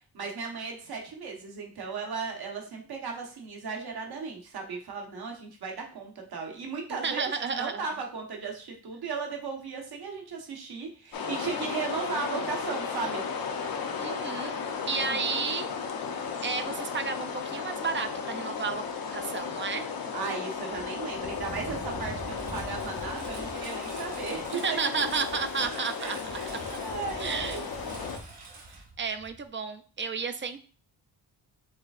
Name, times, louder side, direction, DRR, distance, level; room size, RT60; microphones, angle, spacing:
voice 1, 0.1-13.2 20.1-25.1 25.6-27.6, right 5 dB, 65° right, 1 dB, 1.1 m, -36 dB
voice 2, 7.0-7.9 14.0-14.6 14.9-15.7 16.4-18.8 19.1-19.9 24.5-26.4 27.2-27.6 29.0-30.6, right 5 dB, 30° right, 9 dB, 0.4 m, -32 dB
sound 1, 11.1-28.2, left 5 dB, 60° left, 0.7 m, -35 dB
Engine, 20.7-29.5, right 2 dB, 90° right, 1.2 m, -44 dB
4.8 x 3.4 x 2.4 m, 0.42 s
cardioid pair, 105°, 40 cm